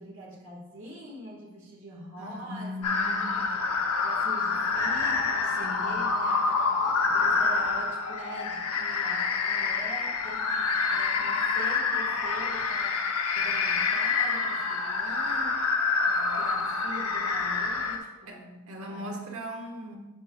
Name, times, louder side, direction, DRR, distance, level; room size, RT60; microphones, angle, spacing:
voice 1, 0.0-3.7 4.0-13.0 13.4-15.6 16.1-19.2, right 1 dB, 60° right, -3 dB, 1.5 m, -44 dB
voice 2, 2.2-3.5 5.6-6.0 18.3-18.4 18.7-20.0, equal, 75° right, 1 dB, 1.3 m, -38 dB
sound 1, 2.8-18.0, left 4 dB, 85° left, 0.7 m, -27 dB
11.0 x 5.2 x 2.3 m, 1.1 s
head